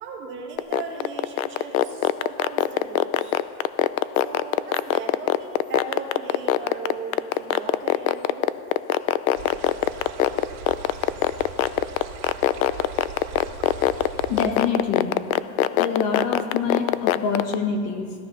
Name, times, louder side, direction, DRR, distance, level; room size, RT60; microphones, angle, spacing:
voice 1, 0.0-3.4 4.2-8.5, right 5 dB, 25° right, 0 dB, 1.8 m, -37 dB
sound 1, 0.6-17.5, left 15 dB, 65° left, 0.7 m, -20 dB
sound 2, 9.3-14.7, right 8 dB, 75° right, 2.5 m, -40 dB
voice 2, 14.3-15.1 15.7-18.1, left 5 dB, 35° left, 3 dB, 1.5 m, -26 dB
15.5 x 14.5 x 5.5 m, 2.3 s
supercardioid pair, 180°, 43 cm